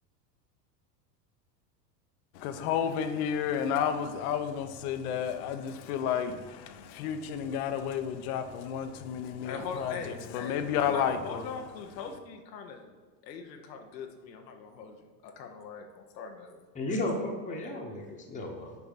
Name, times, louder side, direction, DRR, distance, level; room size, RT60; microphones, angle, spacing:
voice 1, 2.3-11.5, left 8 dB, 60° left, 8 dB, 0.9 m, -31 dB
voice 2, 9.4-12.9 13.2-15.0 15.2-16.6, left 5 dB, 85° left, 4 dB, 1.0 m, -41 dB
voice 3, 16.7-18.8, left 1 dB, 15° left, -1 dB, 1.2 m, -34 dB
7.2 x 4.7 x 4.1 m, 1.4 s
hypercardioid pair, 100°, 49 cm